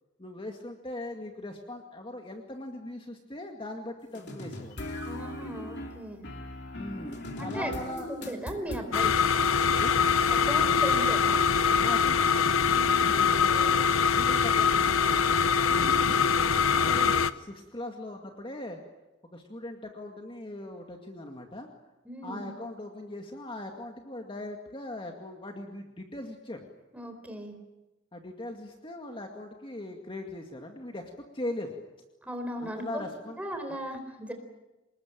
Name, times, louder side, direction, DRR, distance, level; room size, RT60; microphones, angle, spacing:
voice 1, 0.2-4.8 6.7-8.3 9.0-9.1 9.7-10.0 11.8-12.4 13.0-15.4 16.7-18.8 19.3-21.7 22.2-26.7 28.1-31.8 32.6-33.4 33.7-33.8, left 1 dB, 25° left, 3 dB, 2.2 m, -40 dB
sound 1, 4.1-9.0, left 1 dB, 55° left, 3.2 m, -39 dB
voice 2, 5.0-6.3 7.4-9.1 10.3-11.5 12.7-13.2 15.6-16.3 16.8-17.0 22.0-22.5 26.9-27.6 32.2-33.0 33.4-34.3, right 1 dB, 5° right, 5 dB, 4.2 m, -37 dB
sound 2, 8.9-17.3, left 6 dB, 85° left, 0.9 m, -23 dB
26.0 x 21.0 x 9.0 m, 1.0 s
head